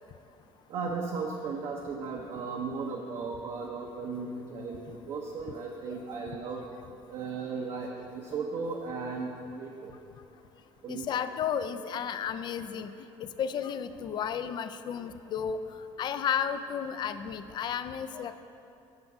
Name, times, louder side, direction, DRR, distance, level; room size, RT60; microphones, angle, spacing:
voice 1, 0.7-6.6 7.1-9.9 10.8-11.2, right 4 dB, 55° right, -1 dB, 0.7 m, -36 dB
voice 2, 10.9-12.9 13.2-15.6 16.0-18.4, left 8 dB, 45° left, 11 dB, 0.4 m, -33 dB
8.1 x 5.2 x 4.8 m, 2.7 s
cardioid pair, 105°, 10 cm